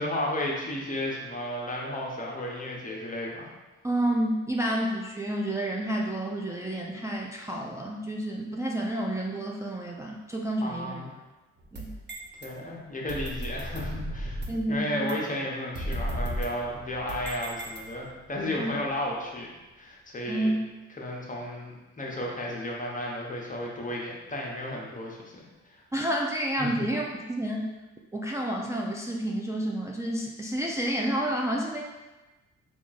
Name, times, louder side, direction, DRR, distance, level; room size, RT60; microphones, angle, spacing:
voice 1, 0.0-3.5 10.6-11.1 12.4-19.5 19.8-20.6 21.0-25.8 26.6-26.8, left 1 dB, 25° left, -2 dB, 0.8 m, -33 dB
voice 2, 3.8-11.0 11.7-11.9 14.5-15.1 18.6-18.7 20.3-20.6 25.9-27.0 27.3-27.7 28.1-31.8, right 1 dB, 10° right, -2 dB, 0.3 m, -29 dB
sound 1, 11.6-12.5 13.1-14.7 15.1-15.2 15.7-18.2, right 1 dB, 35° right, 0.7 m, -35 dB
3.5 x 2.4 x 3.9 m, 1.1 s
cardioid pair, 90°, 30 cm